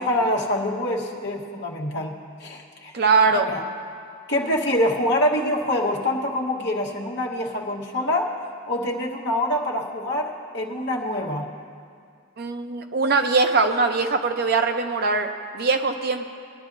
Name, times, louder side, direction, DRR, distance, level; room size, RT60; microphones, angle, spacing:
voice 1, 0.0-2.1 2.4-2.9 3.3-3.6 4.3-8.3 8.7-11.5, left 1 dB, 50° left, -1 dB, 1.3 m, -25 dB
voice 2, 2.9-3.5 12.4-15.3 15.5-16.3, right 4 dB, 45° right, 6 dB, 0.6 m, -21 dB
20.5 x 11.0 x 2.6 m, 2.3 s
head